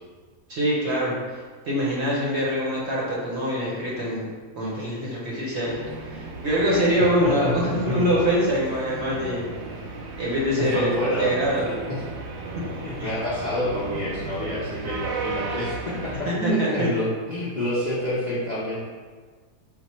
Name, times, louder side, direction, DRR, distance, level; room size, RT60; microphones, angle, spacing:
voice 1, 0.5-1.4 1.6-4.3 4.5-9.4 10.2-10.9 11.2-11.7 12.7-13.1 16.3-16.9, equal, 55° right, -5 dB, 0.9 m, -24 dB
sound 1, 5.7-16.2, right 3 dB, 85° right, 0.6 m, -35 dB
voice 2, 7.2-8.1 10.6-11.3 11.9-12.0 12.8-18.8, left 1 dB, 60° left, -8 dB, 0.4 m, -27 dB
4.2 x 2.1 x 4.2 m, 1.5 s
omnidirectional pair, 1.7 m